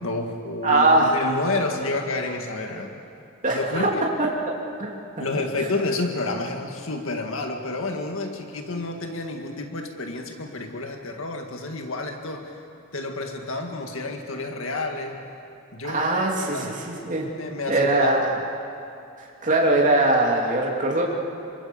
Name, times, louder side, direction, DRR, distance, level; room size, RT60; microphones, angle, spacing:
voice 1, 0.0-2.9 3.5-4.0 5.2-12.5 12.9-15.2 15.7-16.1 16.4-16.7 17.4-18.2, left 2 dB, 65° left, 3 dB, 2.0 m, -29 dB
voice 2, 0.6-1.2 2.7-2.8 3.4-3.9 4.8-5.0 5.6-5.7 15.8-17.3 17.7-18.3 19.2-21.0, right 2 dB, 40° right, -2 dB, 2.8 m, -21 dB
27.0 x 25.0 x 7.1 m, 2.6 s
head